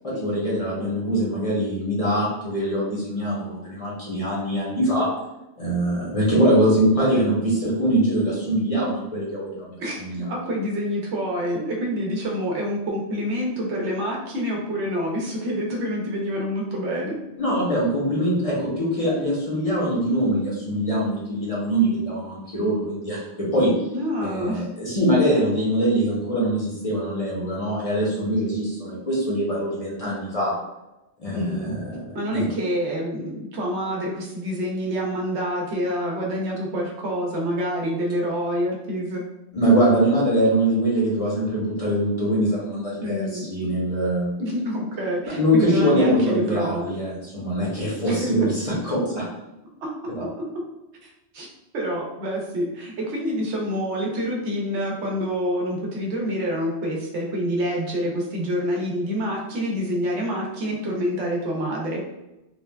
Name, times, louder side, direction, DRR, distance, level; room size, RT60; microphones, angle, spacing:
voice 1, 0.0-5.1 5.6-10.3 17.4-23.7 24.2-30.5 31.2-32.0 32.3-32.4 39.5-44.3 45.4-49.3 50.2-50.3, right 1 dB, 35° left, -7 dB, 0.7 m, -23 dB
voice 2, 9.8-17.2 23.9-24.7 31.3-31.8 32.1-39.2 43.0-43.5 44.4-46.9 48.0-48.3 49.8-49.9 51.0-51.5 51.7-62.0, equal, 80° right, -1 dB, 1.0 m, -27 dB
3.1 x 2.2 x 2.2 m, 0.95 s
omnidirectional pair, 1.2 m